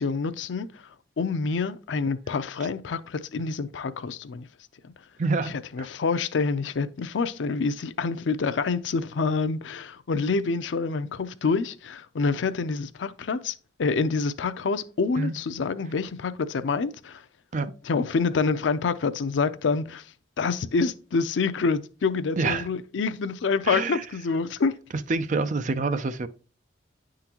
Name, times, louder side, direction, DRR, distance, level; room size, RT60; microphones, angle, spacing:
voice 1, 0.0-4.5 4.8-4.9 5.4-17.3 17.8-24.8, left 4 dB, 85° left, 0.5 m, -27 dB
voice 2, 5.2-5.5 15.2-15.3 17.5-17.7 22.4-22.6 23.7-24.0 25.1-26.3, right 3 dB, 40° right, 0.4 m, -26 dB
9.6 x 3.8 x 2.9 m
head